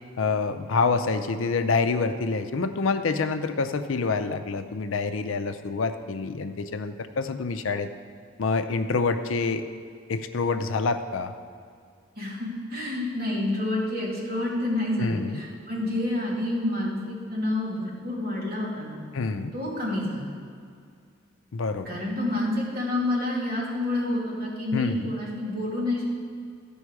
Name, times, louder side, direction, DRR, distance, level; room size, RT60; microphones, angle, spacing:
voice 1, 0.2-7.9 8.4-9.6 10.1-11.3 15.0-15.4 19.1-19.5 21.5-22.0 24.7-25.1, left 4 dB, 80° left, 9 dB, 0.5 m, -27 dB
voice 2, 12.1-19.0 19.5-20.3 21.8-26.0, left 1 dB, 50° right, -5 dB, 2.4 m, -28 dB
13.0 x 5.4 x 4.7 m, 2.2 s
head